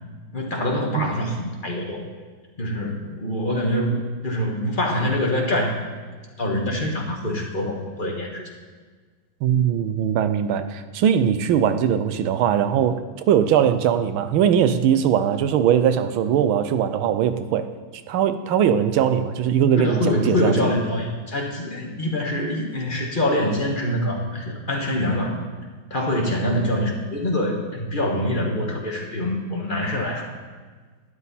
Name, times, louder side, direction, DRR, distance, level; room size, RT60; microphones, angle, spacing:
voice 1, 0.3-2.1 2.6-5.8 6.4-8.4 19.8-25.4 25.9-30.3, left 1 dB, 25° left, 0 dB, 1.4 m, -25 dB
voice 2, 9.4-17.7 18.1-20.6, right 9 dB, 85° right, 11 dB, 1.5 m, -20 dB
12.5 x 10.5 x 4.2 m, 1.5 s
omnidirectional pair, 2.2 m